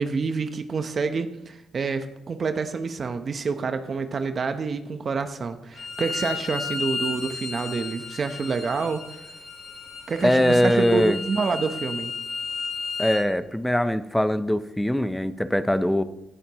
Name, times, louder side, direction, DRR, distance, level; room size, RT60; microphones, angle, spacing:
voice 1, 0.0-9.1 10.1-12.1, right 4 dB, 50° right, 8 dB, 1.0 m, -28 dB
Bowed string instrument, 5.7-13.2, left 4 dB, 70° left, 2.5 m, -33 dB
voice 2, 10.2-11.2 13.0-16.0, equal, 5° left, 12 dB, 0.7 m, -22 dB
16.5 x 11.0 x 3.1 m, 0.88 s
cardioid pair, 70°, 0 cm